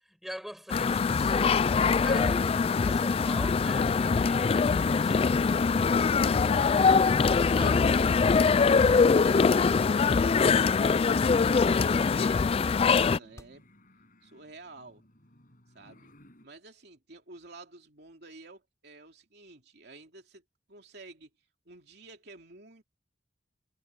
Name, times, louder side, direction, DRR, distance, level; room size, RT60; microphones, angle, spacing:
voice 1, 0.1-5.4 6.3-6.9 7.3-8.6, equal, ahead, 7.5 m, -43 dB
sound 1, 0.7-13.2, left 5 dB, 35° left, 0.3 m, -23 dB
sound 2, 5.0-16.5, left 1 dB, 50° left, 6.1 m, -58 dB
voice 2, 5.8-6.8 9.2-13.6 14.2-15.0 15.7-16.1 16.4-21.3 21.6-22.8, right 2 dB, 65° right, 3.0 m, -51 dB
sound 3, 13.4-13.9, equal, 20° left, 5.8 m, -52 dB
head